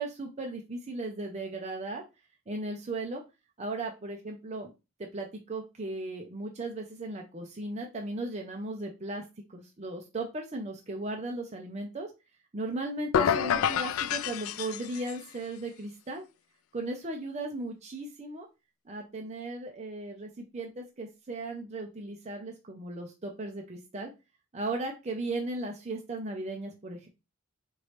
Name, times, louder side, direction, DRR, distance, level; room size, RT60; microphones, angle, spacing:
voice 1, 0.0-2.0 2.5-3.2 3.6-4.7 5.0-9.2 9.5-12.1 12.5-16.2 16.7-18.5 18.9-24.1 24.5-27.1, right 2 dB, 30° right, 1 dB, 0.6 m, -36 dB
sound 1, 13.1-15.2, left 8 dB, 70° left, 0.3 m, -28 dB
4.4 x 3.1 x 3.2 m, 0.26 s
head